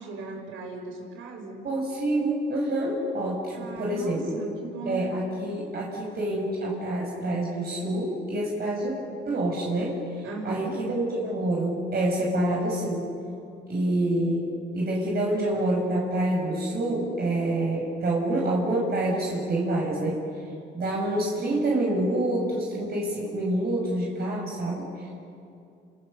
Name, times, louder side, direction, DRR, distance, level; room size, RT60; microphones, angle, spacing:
voice 1, 0.0-1.6 3.5-5.1 10.2-10.8, right 3 dB, 85° right, 3 dB, 6.2 m, -37 dB
voice 2, 1.6-4.4 4.8-8.9 9.2-13.1 13.7-14.5 14.7-20.2 20.7-24.8, right 1 dB, 50° right, -3 dB, 6.5 m, -27 dB
28.5 x 27.0 x 6.8 m, 2.5 s
cardioid pair, 90°, 20 cm